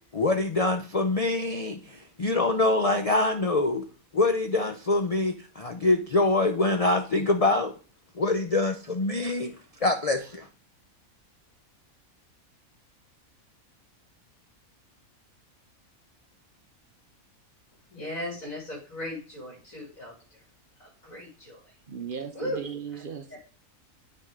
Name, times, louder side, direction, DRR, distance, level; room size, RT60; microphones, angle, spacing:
voice 1, 0.1-3.8 4.1-7.7 8.2-9.5 9.8-10.5, left 2 dB, 45° left, 6 dB, 0.5 m, -25 dB
voice 2, 17.9-20.4 20.8-21.8 22.3-22.6 22.9-23.0 23.3-23.4, left 1 dB, 70° left, -3 dB, 2.9 m, -37 dB
voice 3, 21.9-23.4, right 6 dB, 45° right, 7 dB, 0.9 m, -36 dB
9.4 x 4.7 x 3.7 m, 0.37 s
omnidirectional pair, 1.5 m